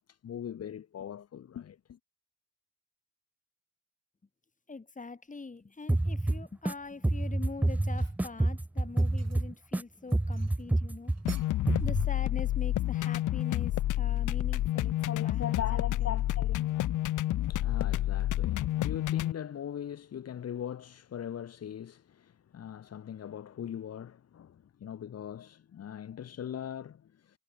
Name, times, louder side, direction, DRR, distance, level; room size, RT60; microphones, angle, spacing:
voice 1, 0.0-2.0 15.0-27.4, left 9 dB, 55° left, 2.1 m, -41 dB
voice 2, 4.7-11.1 11.8-16.2, left 3 dB, 25° left, 7.8 m, -44 dB
sound 1, 5.6-5.8 6.3-7.3 7.7-8.3 8.8-9.6 10.0-12.0 12.3-13.3, right 8 dB, 55° right, 7.3 m, -58 dB
sound 2, 5.9-6.7 7.0-9.8 10.1-11.4 11.7-12.1, right 1 dB, 5° right, 0.4 m, -28 dB
sound 3, 11.3-19.3, left 14 dB, 80° left, 1.9 m, -29 dB
cardioid pair, 90°, 30 cm